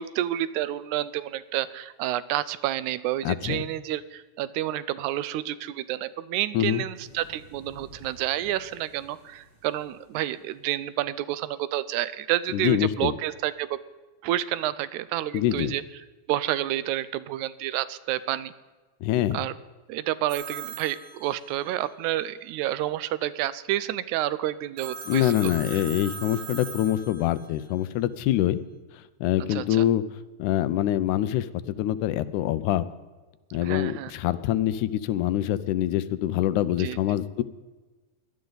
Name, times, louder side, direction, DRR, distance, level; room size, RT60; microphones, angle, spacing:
voice 1, 0.0-13.8 14.2-15.8 16.3-18.5 19.3-19.5 19.9-25.3 25.7-25.8 29.5-29.8 33.6-34.1 36.8-37.0, right 13 dB, 80° right, 16 dB, 1.9 m, -29 dB
voice 2, 3.3-3.6 6.5-6.8 12.5-13.1 15.3-15.7 19.0-19.4 25.1-28.6 29.2-30.0 30.4-32.9 33.5-37.4, left 12 dB, 90° left, 14 dB, 2.1 m, -25 dB
sound 1, 6.9-10.6 12.5-12.8, right 1 dB, 45° right, 3.2 m, -52 dB
Telephone, 20.3-21.8 24.8-27.6, right 6 dB, 65° right, 2.4 m, -39 dB
18.0 x 11.5 x 3.9 m, 1.2 s
omnidirectional pair, 3.4 m